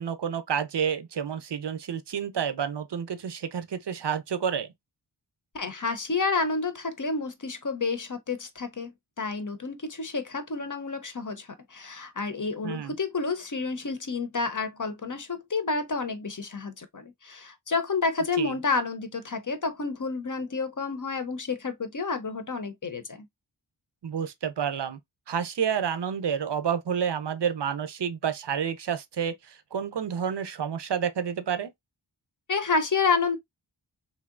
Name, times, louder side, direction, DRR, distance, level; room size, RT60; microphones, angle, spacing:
voice 1, 0.0-4.7 12.6-12.9 18.4-18.5 24.0-25.0 25.3-31.7, right 7 dB, 65° right, 0.6 m, -29 dB
voice 2, 5.5-8.9 9.2-23.3 32.5-33.4, left 4 dB, 45° left, 0.7 m, -30 dB
3.2 x 2.7 x 2.4 m
wide cardioid pair, 50°, 45 cm